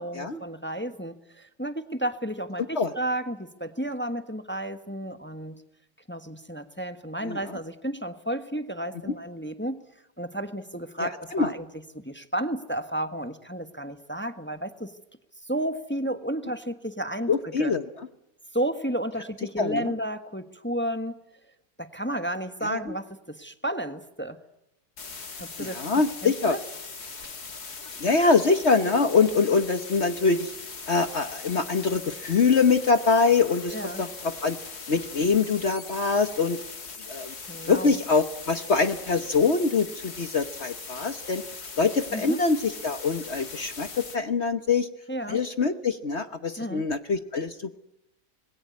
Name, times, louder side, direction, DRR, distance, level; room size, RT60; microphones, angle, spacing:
voice 1, 0.0-5.6 6.1-9.9 10.2-11.7 11.9-14.9 15.4-17.7 18.5-21.2 21.8-24.4 25.4-25.8 26.2-26.6 33.7-34.0 37.4-38.0 42.1-42.4 45.1-45.4 46.6-46.9, right 1 dB, 5° left, 9 dB, 1.2 m, -32 dB
voice 2, 11.0-11.5 17.3-18.1 19.6-19.8 22.6-22.8 25.6-26.6 28.0-30.5 30.9-34.6 34.9-36.6 37.1-37.3 37.7-41.4 41.8-44.9 45.3-47.8, left 4 dB, 45° left, 10 dB, 1.2 m, -24 dB
sound 1, 25.0-44.2, left 4 dB, 60° left, 3.0 m, -40 dB
26.0 x 21.5 x 9.4 m, 0.86 s
omnidirectional pair, 1.9 m